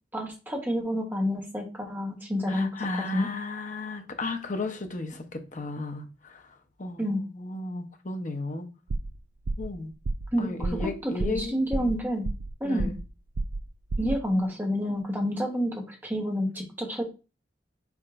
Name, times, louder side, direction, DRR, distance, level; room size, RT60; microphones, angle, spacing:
voice 1, 0.1-2.7 2.9-3.3 7.0-7.2 10.3-12.2 12.6-12.9 14.0-17.0, equal, 10° right, 1.1 m, -29 dB
voice 2, 2.5-8.7 9.6-9.9 10.4-11.9 12.6-13.0, left 2 dB, 45° left, 0.8 m, -35 dB
sound 1, 8.9-9.2 9.5-9.7 10.1-10.3 10.6-10.9 11.2-11.5 11.7-12.5 12.8-13.1 13.4-13.7 13.9-14.2, right 3 dB, 85° right, 0.5 m, -30 dB
4.8 x 4.3 x 2.5 m
head